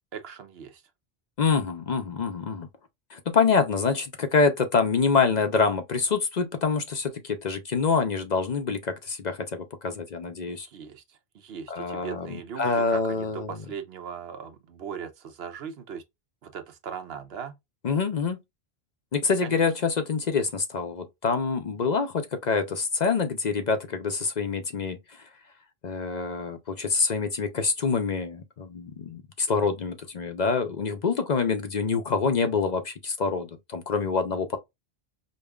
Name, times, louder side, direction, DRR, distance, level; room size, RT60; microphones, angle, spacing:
voice 1, 0.1-0.8 10.4-16.0 16.4-17.6 19.4-19.6, right 7 dB, 75° right, 0.9 m, -39 dB
voice 2, 1.4-2.7 3.1-10.7 11.7-12.3 12.6-13.5 17.8-18.4 19.1-25.2 25.8-34.6, left 5 dB, 50° left, 0.6 m, -26 dB
5.2 x 2.1 x 2.3 m
omnidirectional pair, 1.1 m